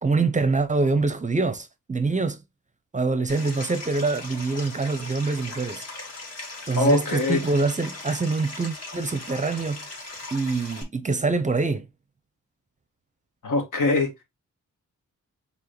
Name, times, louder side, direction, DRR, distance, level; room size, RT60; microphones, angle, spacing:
voice 1, 0.0-2.4 2.9-5.8 6.7-9.8 10.3-11.9, right 3 dB, 25° right, 0.5 m, -25 dB
Stream, 3.3-10.8, left 2 dB, 55° left, 1.8 m, -39 dB
voice 2, 6.8-7.4 13.4-14.1, left 2 dB, 80° left, 1.7 m, -22 dB
4.8 x 3.4 x 3.0 m
wide cardioid pair, 95°, 31 cm